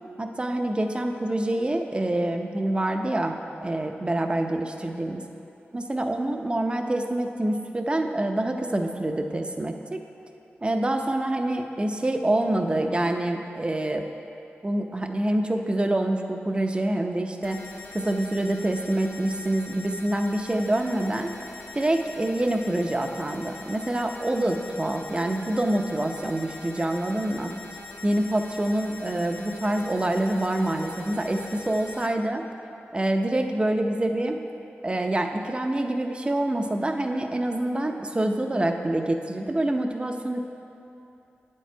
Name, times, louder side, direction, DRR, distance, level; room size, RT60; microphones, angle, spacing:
voice 1, 0.2-5.2 5.7-10.0 10.6-14.0 14.6-17.6 17.9-21.3 21.7-27.5 28.0-32.4 32.9-34.4 34.8-40.4, right 1 dB, 25° right, 4 dB, 0.7 m, -26 dB
sound 1, 17.4-32.1, left 3 dB, 60° left, 0.9 m, -43 dB
9.0 x 7.5 x 4.5 m, 2.8 s
wide cardioid pair, 75°, 4 cm